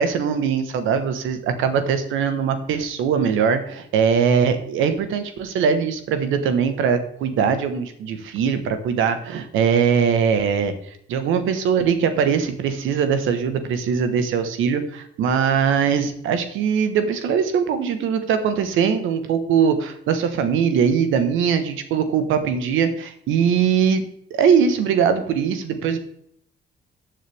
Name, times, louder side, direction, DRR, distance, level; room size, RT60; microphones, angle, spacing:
voice 1, 0.0-24.0 24.3-26.0, right 7 dB, 90° right, 9 dB, 1.2 m, -21 dB
14.0 x 7.4 x 3.4 m, 0.70 s
cardioid pair, 90°, 20 cm